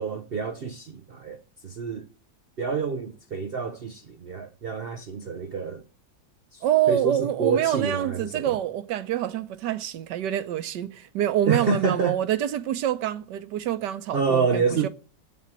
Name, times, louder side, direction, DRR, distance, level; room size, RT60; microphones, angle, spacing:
voice 1, 0.0-1.4 1.6-2.1 2.6-5.8 6.5-8.5 11.5-12.2 14.1-14.9, right 5 dB, 90° right, 0.5 m, -27 dB
voice 2, 6.6-14.9, right 11 dB, 75° right, 1.4 m, -26 dB
8.7 x 7.1 x 8.8 m
omnidirectional pair, 1.9 m